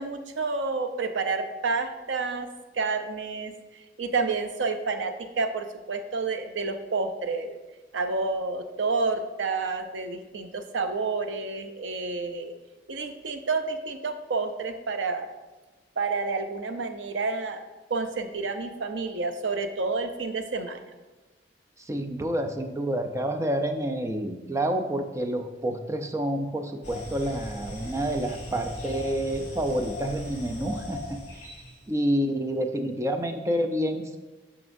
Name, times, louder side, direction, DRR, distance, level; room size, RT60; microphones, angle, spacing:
voice 1, 0.0-2.5 2.7-3.5 4.0-7.6 7.9-12.5 12.9-15.3 16.0-17.6 17.9-20.8, right 4 dB, 85° right, 8 dB, 0.6 m, -29 dB
voice 2, 21.9-31.2 31.9-34.2, right 1 dB, 15° right, 5 dB, 0.5 m, -28 dB
sound 1, 26.8-31.8, left 1 dB, 40° left, 2.4 m, -38 dB
9.3 x 6.0 x 2.6 m, 1.2 s
head